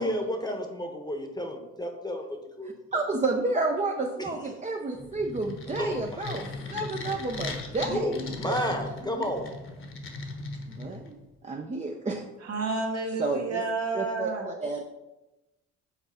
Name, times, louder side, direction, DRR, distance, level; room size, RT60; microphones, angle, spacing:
voice 1, 0.0-2.2 2.6-2.7 4.2-4.3 5.8-6.5 7.8-9.5, equal, 15° left, 4 dB, 1.1 m, -32 dB
voice 2, 2.9-6.4 6.7-8.7 9.2-9.3 10.7-11.2 11.4-12.2 13.2-13.6 13.9-14.8, right 3 dB, 25° right, 1 dB, 0.7 m, -30 dB
sound 1, 4.9-11.3, left 3 dB, 40° left, 1.2 m, -38 dB
voice 3, 12.4-14.5, right 3 dB, 55° right, 1 dB, 1.6 m, -30 dB
6.0 x 4.0 x 5.6 m, 0.99 s
cardioid pair, 90°, 30 cm